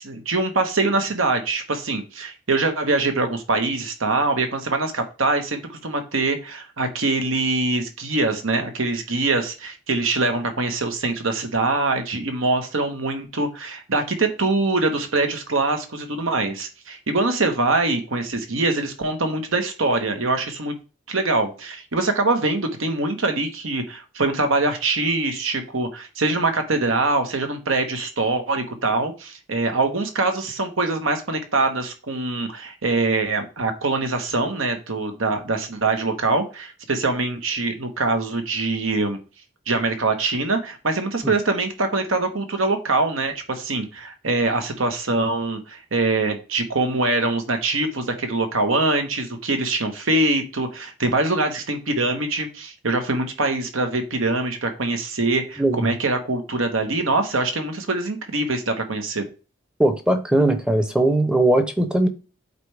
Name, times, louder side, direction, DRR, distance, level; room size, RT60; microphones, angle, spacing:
voice 1, 0.0-20.7 21.1-39.2 39.7-59.3, right 3 dB, 85° right, 1.3 m, -23 dB
voice 2, 55.6-55.9 59.8-62.1, right 1 dB, 5° right, 0.6 m, -19 dB
8.2 x 4.2 x 3.4 m
head